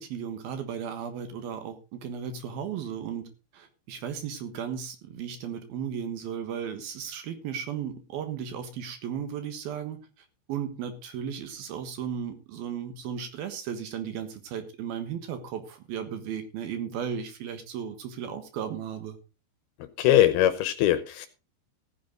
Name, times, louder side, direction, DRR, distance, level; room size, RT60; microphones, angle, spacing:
voice 1, 0.0-3.2 3.5-10.0 10.5-19.2, right 8 dB, 65° right, 8 dB, 2.9 m, -35 dB
voice 2, 20.0-21.3, left 12 dB, 75° left, 11 dB, 2.5 m, -21 dB
15.5 x 9.7 x 3.8 m, 0.30 s
omnidirectional pair, 5.1 m